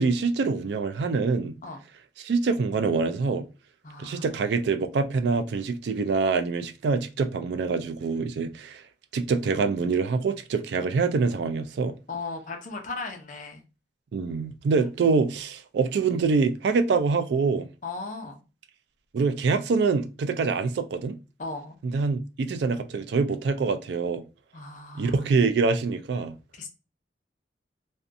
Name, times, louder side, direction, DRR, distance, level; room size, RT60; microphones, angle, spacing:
voice 1, 0.0-1.5 2.2-3.4 4.0-8.8 9.1-11.9 14.1-17.7 19.1-21.2 21.8-24.2 25.0-26.3, right 4 dB, 65° right, 0.3 m, -25 dB
voice 2, 3.8-4.2 12.1-13.6 17.8-18.4 21.4-21.8 24.5-25.2 26.6-26.7, left 3 dB, 45° left, 0.5 m, -36 dB
2.6 x 2.2 x 2.5 m
head